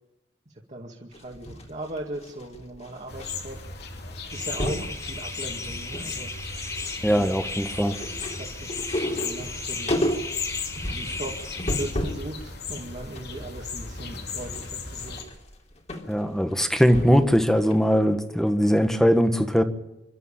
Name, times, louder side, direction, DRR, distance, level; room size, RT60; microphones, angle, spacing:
voice 1, 0.7-3.6 4.3-6.3 7.1-7.3 7.7-7.8 8.2-10.1 10.9-15.2, right 1 dB, 40° right, -2 dB, 2.3 m, -38 dB
sound 1, 1.1-3.3 3.6-3.8 4.1-4.9 5.5-6.1 6.4-12.3 12.7-17.4 17.7-17.8, left 1 dB, 40° left, 3.2 m, -32 dB
sound 2, 3.1-15.2, left 5 dB, 65° left, 2.8 m, -36 dB
sound 3, 4.3-11.9, left 2 dB, 20° left, 3.2 m, -37 dB
voice 2, 7.0-7.9 16.1-19.6, equal, 5° left, 9 dB, 1.5 m, -21 dB
26.5 x 12.5 x 8.8 m, 0.92 s
head